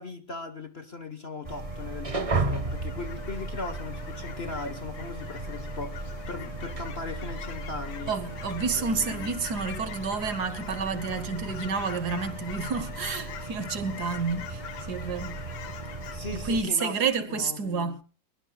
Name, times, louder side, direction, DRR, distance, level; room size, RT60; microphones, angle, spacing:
voice 1, 0.0-8.1 8.8-9.4 16.1-17.0 17.3-17.9, left 3 dB, 35° left, 1.2 m, -38 dB
sound 1, 1.4-16.6, right 2 dB, 20° right, 1.0 m, -36 dB
Fowl / Chirp tweet, 1.5-16.2, left 9 dB, 85° left, 1.9 m, -44 dB
voice 2, 8.1-15.4 16.3-18.0, right 5 dB, 60° right, 1.6 m, -30 dB
22.0 x 21.0 x 2.3 m
omnidirectional pair, 2.1 m